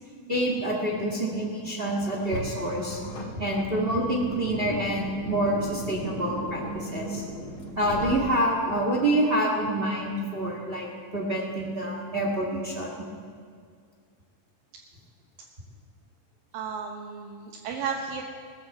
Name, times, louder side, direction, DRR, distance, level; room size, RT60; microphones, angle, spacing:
voice 1, 0.3-3.0 3.4-7.2 7.8-10.9 11.1-13.1, right 1 dB, 35° right, -1 dB, 0.9 m, -27 dB
Car, 2.1-8.7, equal, 55° left, 3.2 m, -36 dB
voice 2, 16.5-18.2, right 6 dB, 80° right, 1 dB, 2.7 m, -33 dB
19.5 x 7.7 x 7.2 m, 2.1 s
omnidirectional pair, 4.0 m